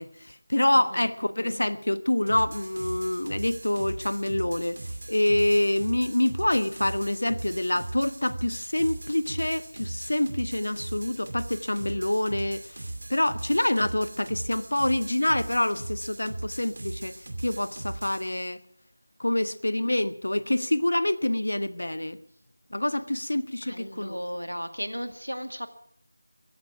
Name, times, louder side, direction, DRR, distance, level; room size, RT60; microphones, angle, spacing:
voice 1, 0.0-18.6 19.2-22.2 22.7-24.2, left 1 dB, 65° left, 1.1 m, -26 dB
voice 2, 0.7-1.1 23.6-25.7, equal, 85° right, 2.0 m, -35 dB
sound 1, 2.3-18.3, right 2 dB, 45° right, 2.6 m, -38 dB
16.0 x 15.0 x 5.9 m
figure-of-eight pair, 165°, 0 cm